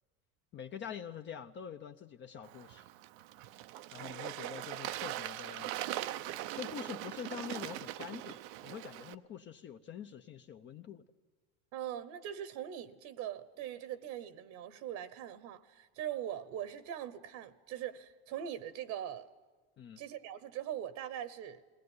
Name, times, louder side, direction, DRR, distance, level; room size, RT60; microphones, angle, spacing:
voice 1, 0.5-2.8 3.9-5.8 6.5-11.0 19.8-20.0, left 8 dB, 35° left, 6 dB, 0.8 m, -45 dB
Bird / Water, 2.4-9.1, right 14 dB, 80° right, 0.8 m, -41 dB
voice 2, 11.7-19.3 20.0-21.6, right 10 dB, 60° right, 14 dB, 1.2 m, -41 dB
21.0 x 18.5 x 9.6 m, 1.4 s
supercardioid pair, 125°, 31 cm